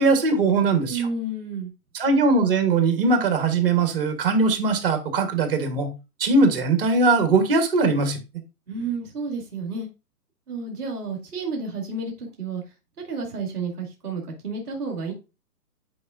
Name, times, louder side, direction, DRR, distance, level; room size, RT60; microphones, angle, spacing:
voice 1, 0.0-1.0 1.9-5.9 6.2-8.2, right 3 dB, 35° right, 1.1 m, -20 dB
voice 2, 0.9-1.7 8.7-9.9 10.5-12.6 13.1-15.1, right 3 dB, 5° right, 0.6 m, -31 dB
8.3 x 4.6 x 2.5 m
hypercardioid pair, 165°, 48 cm